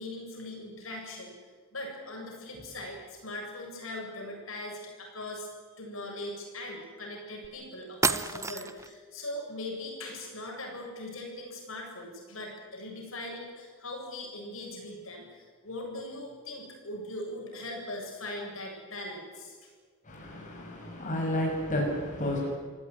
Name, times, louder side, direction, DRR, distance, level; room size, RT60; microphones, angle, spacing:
voice 1, 0.0-1.3 1.7-5.5 5.8-19.7, left 1 dB, 75° left, 1 dB, 7.8 m, -40 dB
sound 1, 7.4-7.5 8.0-8.9, right 4 dB, 15° right, 0.8 m, -29 dB
voice 2, 20.0-22.5, left 1 dB, 40° left, -1 dB, 6.2 m, -31 dB
28.0 x 17.0 x 9.6 m, 1.5 s
head